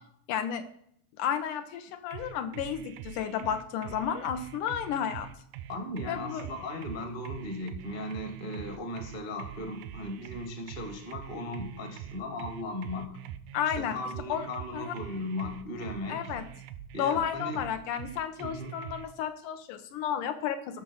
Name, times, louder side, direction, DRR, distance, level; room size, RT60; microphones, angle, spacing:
voice 1, 0.3-0.6 1.2-5.3 6.1-6.5 13.5-14.0 14.3-14.5 14.7-14.9 16.1-16.4 17.0-20.8, left 8 dB, 75° left, 8 dB, 2.2 m, -32 dB
sound 1, 2.1-19.1, right 11 dB, 85° right, 2.3 m, -44 dB
voice 2, 5.7-13.2 13.7-16.3 16.9-17.6 18.4-18.7, left 1 dB, 25° left, 5 dB, 1.0 m, -37 dB
13.5 x 6.1 x 6.2 m, 0.68 s
omnidirectional pair, 3.9 m